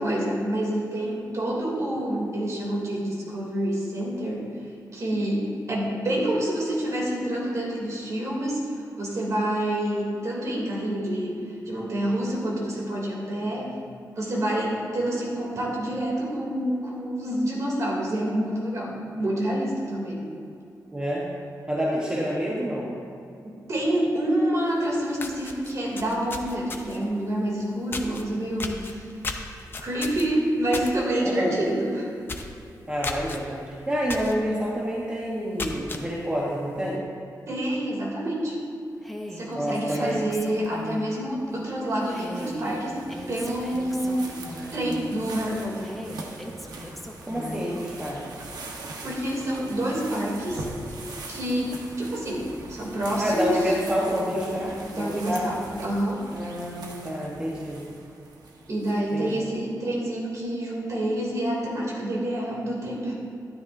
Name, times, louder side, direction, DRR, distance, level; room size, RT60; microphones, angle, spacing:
voice 1, 0.0-4.6 4.9-13.7 14.2-20.2 23.4-29.1 29.8-32.1 37.5-38.6 39.3-43.0 43.3-44.4 44.7-45.9 49.0-50.6 51.3-53.7 54.8-56.3 58.7-63.1, right 1 dB, 50° right, -3 dB, 2.9 m, -27 dB
voice 2, 20.9-21.3 21.7-22.9 31.2-31.6 32.9-37.0 39.5-40.2 47.3-48.2 53.2-55.5 56.3-57.8 59.1-59.5, equal, 15° right, -5 dB, 1.2 m, -28 dB
sound 1, 24.7-24.8 25.1-27.1 27.9-28.2 28.6-30.9 31.3-31.5 31.8-31.9 32.2-32.6 33.0-33.4 34.1-34.4 34.8-34.9 35.4-36.0, left 3 dB, 35° left, 0.7 m, -34 dB
Female speech woman speaking, 39.0-41.2 42.1-45.0 45.8-47.7, equal, ahead, 0.8 m, -39 dB
sound 2, 41.5-59.3, right 2 dB, 80° right, 1.3 m, -42 dB
13.0 x 12.0 x 2.7 m, 2.6 s
wide cardioid pair, 165°, 7 cm